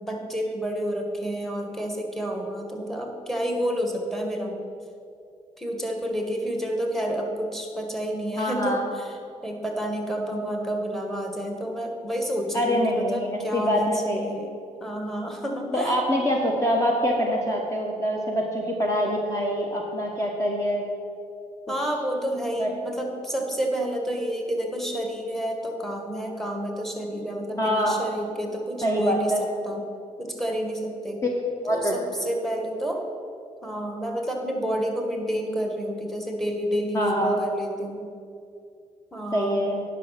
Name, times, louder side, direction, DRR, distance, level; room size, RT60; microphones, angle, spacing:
voice 1, 0.0-4.6 5.6-9.1 9.4-14.5 14.8-16.0 21.7-29.4 29.6-29.8 30.2-31.2 31.7-33.0 33.6-38.1 39.1-39.6, equal, ahead, 2 dB, 1.7 m, -29 dB
voice 2, 8.4-8.8 12.5-14.3 15.7-20.9 22.6-22.7 27.6-28.0 28.8-29.4 31.2-31.3 31.6-32.0 36.9-37.4 39.3-39.8, equal, 20° left, -1 dB, 1.3 m, -25 dB
10.0 x 5.7 x 6.0 m, 2.6 s
supercardioid pair, 65°, 14 cm